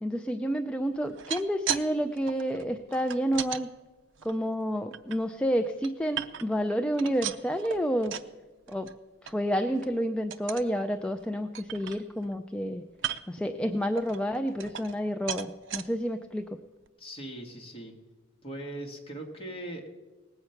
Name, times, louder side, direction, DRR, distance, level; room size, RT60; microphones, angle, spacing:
voice 1, 0.0-3.7 4.2-8.1 8.7-8.9 9.2-12.8 13.3-16.5, equal, 5° left, 6 dB, 0.4 m, -29 dB
sound 1, 1.0-1.9 2.1-3.6 4.2-5.2 5.6-6.6 6.9-8.3 8.7-8.9 9.3-9.4 9.7-10.0 10.3-10.7 11.2-11.3 11.5-12.4 12.9-13.4 14.0-15.0 15.3-15.8 16.4-16.5 16.9-17.0, right 9 dB, 65° right, 0.6 m, -36 dB
voice 2, 17.0-17.9 18.4-19.9, right 1 dB, 30° left, 0 dB, 2.0 m, -40 dB
19.0 x 7.9 x 5.8 m, 1.3 s
head